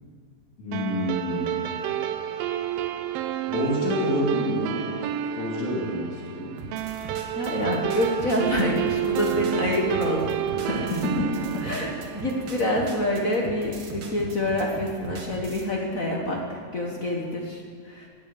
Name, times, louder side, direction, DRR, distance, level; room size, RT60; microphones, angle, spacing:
voice 1, 0.6-1.7 3.5-4.8 5.4-6.6 10.9-11.7, left 1 dB, 80° left, -3 dB, 3.9 m, -28 dB
sound 1, 0.7-13.5, right 11 dB, 80° right, 1.5 m, -30 dB
sound 2, 6.6-15.7, right 4 dB, 55° right, 1.9 m, -39 dB
voice 2, 7.3-10.9 11.6-18.1, left 1 dB, 45° left, 0 dB, 1.1 m, -27 dB
19.0 x 8.1 x 7.0 m, 2.1 s
omnidirectional pair, 3.3 m